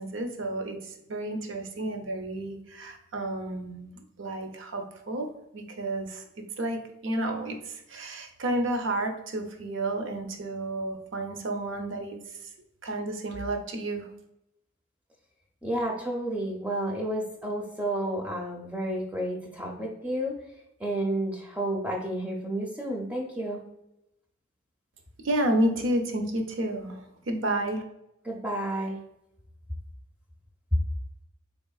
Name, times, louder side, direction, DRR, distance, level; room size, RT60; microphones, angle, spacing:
voice 1, 0.0-5.3 5.5-6.2 6.6-12.5 12.8-14.1 25.2-27.8, right 1 dB, 60° right, 4 dB, 0.5 m, -31 dB
voice 2, 15.6-20.3 20.8-23.6 28.2-29.0 30.7-30.8, right 1 dB, 5° right, -1 dB, 0.4 m, -30 dB
3.7 x 3.6 x 2.3 m, 0.85 s
head